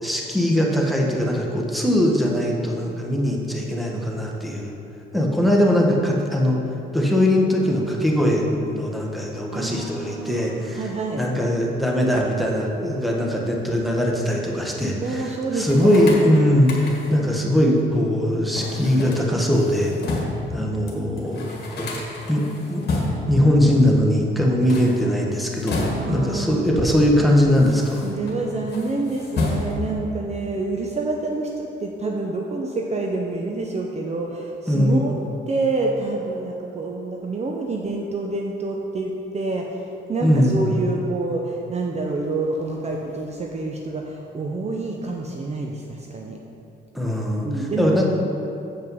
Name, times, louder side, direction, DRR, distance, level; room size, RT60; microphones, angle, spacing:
voice 1, 0.0-4.7 5.1-6.6 6.9-10.8 11.2-19.9 20.5-22.0 22.3-22.4 22.7-22.8 23.3-28.0 34.7-35.1 40.2-40.8 46.9-48.1, equal, ahead, -1 dB, 1.3 m, -21 dB
voice 2, 9.5-11.2 15.0-16.1 23.3-23.5 25.8-26.7 28.0-35.1 35.5-46.4 47.4-47.9, right 3 dB, 35° right, 0 dB, 0.7 m, -27 dB
sound 1, 15.6-17.3 18.5-20.5 20.9-21.0 21.2-23.4 24.5-26.3 27.1-28.3 28.7-30.0, left 2 dB, 55° left, 1.7 m, -30 dB
7.8 x 5.4 x 5.4 m, 2.9 s
cardioid pair, 90°, 20 cm